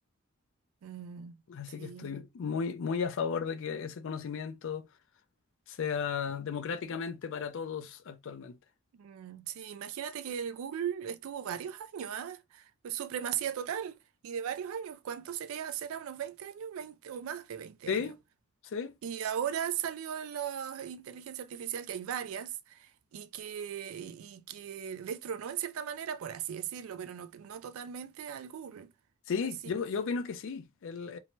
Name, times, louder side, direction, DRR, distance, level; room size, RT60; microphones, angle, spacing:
voice 1, 0.8-1.4 1.8-2.2 8.9-14.0 14.2-18.1 19.0-28.9 29.4-29.7, right 8 dB, 70° right, 0.3 m, -38 dB
voice 2, 1.5-4.9 5.7-8.6 17.9-18.2 18.6-19.0 29.3-31.2, left 6 dB, 60° left, 0.4 m, -34 dB
2.8 x 2.1 x 2.9 m
head